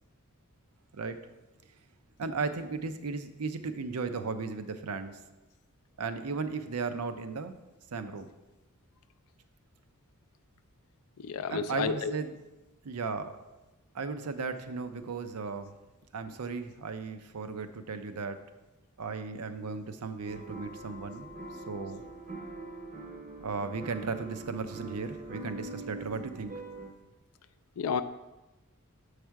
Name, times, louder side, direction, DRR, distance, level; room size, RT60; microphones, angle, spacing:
voice 1, 2.2-5.2 6.0-7.5 7.9-8.3 11.5-12.3 12.8-13.3 13.9-15.7 16.1-18.4 19.0-22.0 23.4-26.5, right 4 dB, 80° right, 10 dB, 0.6 m, -36 dB
voice 2, 11.2-12.1 27.8-28.0, left 6 dB, 70° left, 10 dB, 0.4 m, -31 dB
sound 1, 20.2-26.9, right 2 dB, 40° right, 0.7 m, -43 dB
7.3 x 4.9 x 4.6 m, 1.0 s
head